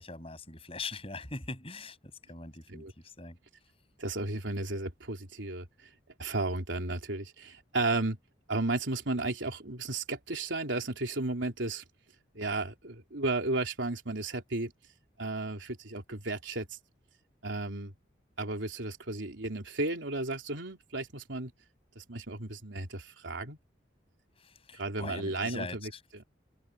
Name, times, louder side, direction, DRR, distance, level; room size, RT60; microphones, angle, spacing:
voice 1, 0.0-3.4 24.4-26.0, left 3 dB, 30° left, 7.9 m, -42 dB
voice 2, 4.0-5.7 6.2-8.2 8.5-11.8 12.3-14.7 15.2-16.7 17.4-17.9 18.4-21.5 22.0-23.6 24.7-26.2, right 2 dB, 85° right, 3.5 m, -34 dB
head